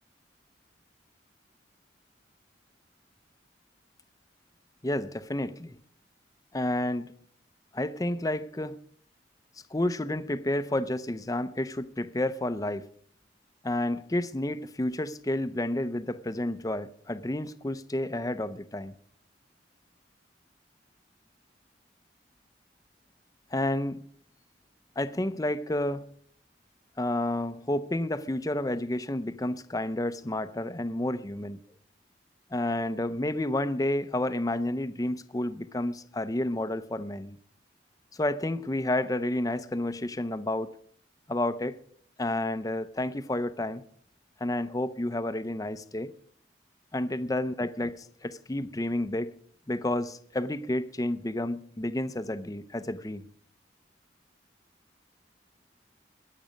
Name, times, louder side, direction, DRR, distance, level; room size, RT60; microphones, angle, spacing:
voice 1, 4.8-5.8 6.5-7.1 7.7-8.8 9.7-12.9 13.6-18.9 23.5-24.0 25.0-26.0 27.0-31.6 32.5-37.4 38.1-40.7 41.3-41.8 42.2-43.8 44.4-46.1 46.9-49.3 49.7-53.2, left 1 dB, 20° left, 0.6 m, -30 dB
21.5 x 7.6 x 5.2 m
head